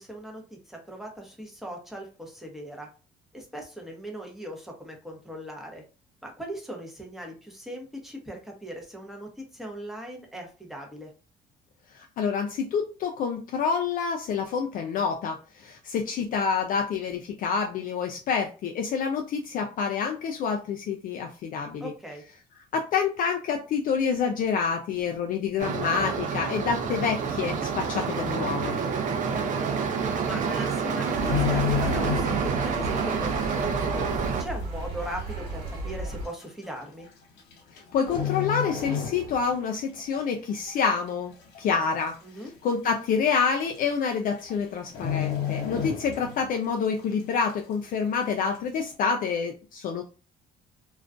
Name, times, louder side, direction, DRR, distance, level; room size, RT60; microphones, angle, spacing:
voice 1, 0.0-2.9 3.3-5.8 6.2-11.1 21.8-22.2 29.0-29.9 30.2-34.0 34.4-37.1 42.2-42.5, right 1 dB, ahead, 0 dB, 0.8 m, -39 dB
voice 2, 12.2-21.9 22.7-28.8 37.7-41.3 41.6-42.2 42.6-50.0, left 6 dB, 55° left, 3 dB, 0.4 m, -27 dB
sound 1, 25.6-34.4, right 6 dB, 50° right, 0.5 m, -28 dB
sound 2, 31.0-32.7 33.0-33.2 33.8-33.9 34.8-34.9 35.1-35.2 36.0-36.3 37.4-37.8 38.1-39.6 40.0-40.2 40.7-41.2 41.5-41.6 41.9-42.0 42.4-42.5 43.5-43.6 43.8-44.1 44.4-44.5 44.9-46.6 46.9-47.0, left 8 dB, 85° left, 0.8 m, -30 dB
sound 3, 31.1-36.3, right 1 dB, 65° right, 1.1 m, -34 dB
2.4 x 2.2 x 2.4 m, 0.35 s
cardioid pair, 110°, 17 cm